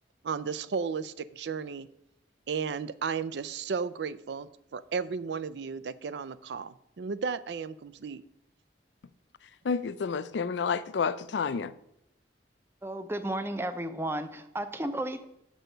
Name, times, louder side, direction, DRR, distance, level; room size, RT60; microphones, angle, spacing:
voice 1, 0.2-1.9 2.5-8.2, right 5 dB, 70° right, 0.4 m, -34 dB
voice 2, 9.6-11.7, left 5 dB, 80° left, 0.4 m, -30 dB
voice 3, 12.8-15.2, right 1 dB, 15° right, 0.5 m, -33 dB
6.6 x 6.2 x 5.1 m
head